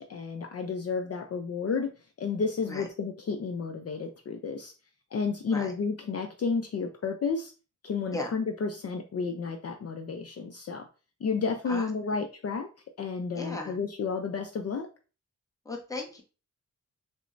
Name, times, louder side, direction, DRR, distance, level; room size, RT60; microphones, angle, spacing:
voice 1, 0.0-1.9 2.2-4.7 5.1-7.5 7.8-10.9 11.2-12.7 13.0-14.9, left 5 dB, 50° left, 4 dB, 0.4 m, -31 dB
voice 2, 11.7-12.2 13.3-13.8 15.6-16.2, left 2 dB, 10° left, 1 dB, 0.8 m, -37 dB
6.1 x 2.1 x 2.5 m, 0.35 s
wide cardioid pair, 100°, 32 cm